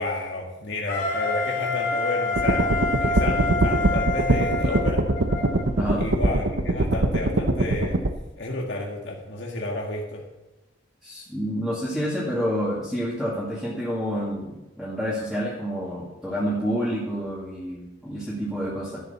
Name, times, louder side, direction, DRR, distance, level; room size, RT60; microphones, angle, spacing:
voice 1, 0.0-5.0 6.0-8.0 8.4-10.2, left 2 dB, 65° left, -1 dB, 1.8 m, -31 dB
Wind instrument woodwind instrument, 0.9-5.6, left 3 dB, 45° left, 2.7 m, -27 dB
sound 1, 2.4-8.1, right 2 dB, 65° right, 0.9 m, -22 dB
voice 2, 5.8-6.1 11.0-19.0, equal, ahead, -9 dB, 2.3 m, -28 dB
12.0 x 7.0 x 7.1 m, 1.0 s
head